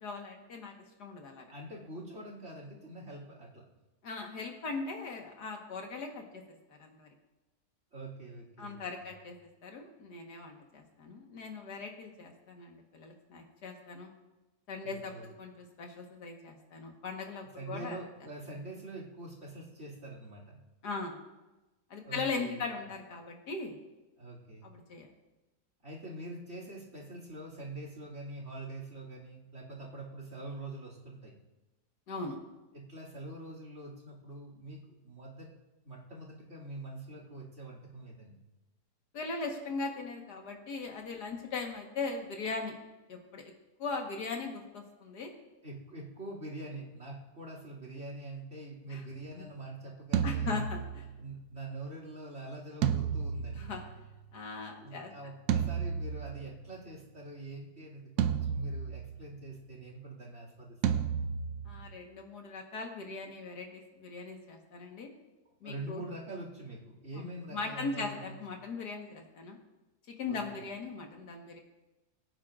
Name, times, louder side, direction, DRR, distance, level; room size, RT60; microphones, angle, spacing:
voice 1, 0.0-1.5 4.0-6.4 6.7-7.1 8.6-9.4 9.6-14.1 14.7-18.0 20.8-21.2 21.9-23.8 24.6-25.1 32.1-32.4 39.1-42.7 43.1-43.4 43.8-45.3 48.9-49.0 49.4-49.5 50.2-51.0 53.5-53.8 54.3-55.1 61.7-65.1 65.6-66.0 67.1-69.6 70.1-71.6, left 4 dB, 80° left, 2 dB, 2.1 m, -39 dB
voice 2, 1.5-3.7 7.9-8.8 14.8-15.3 17.6-20.6 22.0-22.6 24.2-24.7 25.8-31.3 32.7-35.5 35.8-38.4 45.6-50.7 51.2-53.7 54.8-61.0 65.6-68.4 70.3-70.6, right 2 dB, 45° right, -2 dB, 2.9 m, -44 dB
sound 1, 50.1-51.3 52.8-54.3 55.5-56.7 58.2-59.4 60.8-62.0, right 7 dB, 75° right, 1.2 m, -32 dB
21.5 x 9.2 x 2.5 m, 1.1 s
omnidirectional pair, 1.7 m